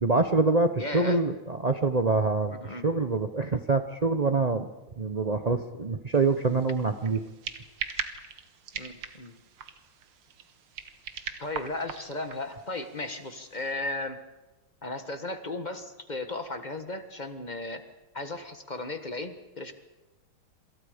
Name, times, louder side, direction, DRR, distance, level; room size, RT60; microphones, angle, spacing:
voice 1, 0.0-4.7 5.0-7.2, right 3 dB, 70° right, 7 dB, 0.3 m, -25 dB
voice 2, 0.8-1.2 2.6-2.9 8.7-9.3 11.4-14.2 14.8-17.8 18.1-19.7, left 2 dB, 25° left, 8 dB, 1.3 m, -35 dB
sound 1, 6.1-13.7, right 7 dB, 90° right, 2.2 m, -41 dB
27.0 x 26.0 x 5.1 m, 1.1 s
omnidirectional pair, 2.3 m